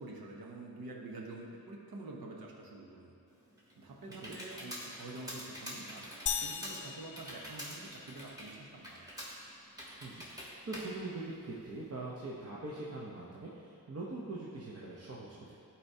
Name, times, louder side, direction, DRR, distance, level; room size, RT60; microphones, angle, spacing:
voice 1, 0.0-3.1 3.8-6.1 6.4-9.1, right 2 dB, 90° right, -1 dB, 0.9 m, -47 dB
Computer keyboard, 3.3-11.9, equal, 10° right, 1.3 m, -47 dB
sound 1, 6.3-8.2, left 7 dB, 60° left, 0.5 m, -39 dB
voice 2, 10.0-15.5, right 2 dB, 45° right, -5 dB, 0.8 m, -43 dB
11.5 x 4.3 x 2.7 m, 2.6 s
wide cardioid pair, 115°, 35 cm